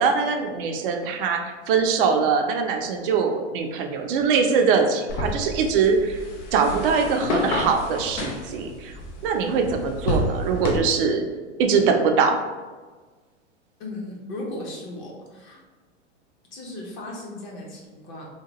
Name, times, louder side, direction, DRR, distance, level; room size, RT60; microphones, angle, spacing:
voice 1, 0.0-6.2 6.5-8.9 9.2-11.2 11.6-12.4, right 5 dB, 50° right, 4 dB, 0.5 m, -22 dB
sound 1, 5.1-10.8, left 1 dB, 80° left, 0.7 m, -29 dB
voice 2, 13.8-15.6 16.5-18.3, left 1 dB, 35° left, -2 dB, 0.8 m, -36 dB
2.8 x 2.2 x 2.8 m, 1.3 s
hypercardioid pair, 110°, 36 cm